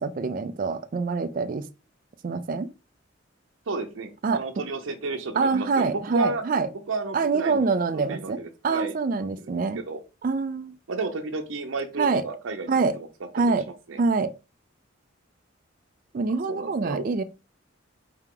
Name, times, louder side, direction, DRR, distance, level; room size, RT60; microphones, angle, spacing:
voice 1, 0.0-1.7 2.2-2.7 4.2-4.4 5.4-6.7 7.1-9.8 10.2-10.7 12.0-12.2 12.7-13.0 13.3-13.6 14.0-14.3 16.1-17.2, right 4 dB, 45° right, 0.3 m, -25 dB
voice 2, 3.7-6.4 6.7-8.9 9.2-10.0 10.9-13.1 13.9-14.0 16.5-17.0, right 3 dB, 85° right, 0.7 m, -32 dB
4.6 x 2.8 x 3.7 m
head